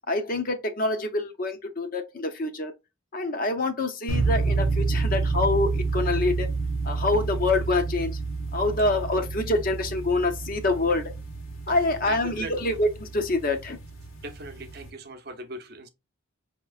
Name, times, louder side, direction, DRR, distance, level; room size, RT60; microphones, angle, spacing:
voice 1, 0.1-2.7 3.1-6.5 6.8-8.2 8.5-11.1 11.7-13.8, left 2 dB, 45° left, 0.6 m, -26 dB
sound 1, 4.1-14.9, right 4 dB, 80° left, 1.3 m, -29 dB
voice 2, 12.1-12.7 14.2-15.9, right 2 dB, 50° right, 0.7 m, -39 dB
5.6 x 2.9 x 2.3 m
head